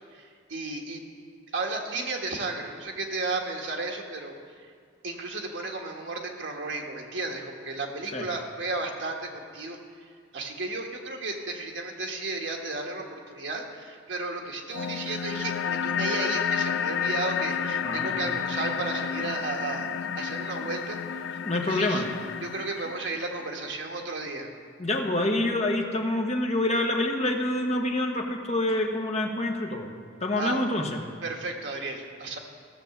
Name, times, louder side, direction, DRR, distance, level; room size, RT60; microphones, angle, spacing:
voice 1, 0.1-1.0 1.5-4.7 5.0-9.8 10.1-19.9 20.1-21.4 21.6-22.0 22.4-24.5 30.4-30.7 31.2-32.4, right 3 dB, 70° right, 1 dB, 1.5 m, -34 dB
sound 1, 14.7-23.7, left 7 dB, 85° left, 0.5 m, -31 dB
voice 2, 17.8-18.3 21.4-22.1 24.8-29.9 30.2-31.0, left 1 dB, 35° left, 2 dB, 1.2 m, -27 dB
15.0 x 6.7 x 7.1 m, 2.1 s
head